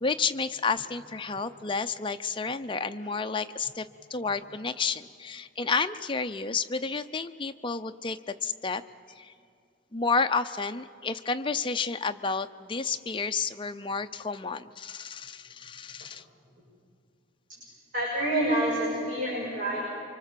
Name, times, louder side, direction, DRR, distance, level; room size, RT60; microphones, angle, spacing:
voice 1, 0.0-8.8 9.2-9.3 9.9-16.2, left 4 dB, 25° left, 8 dB, 0.6 m, -31 dB
voice 2, 17.9-19.8, right 1 dB, 45° right, -5 dB, 6.5 m, -28 dB
28.5 x 25.0 x 7.6 m, 2.4 s
head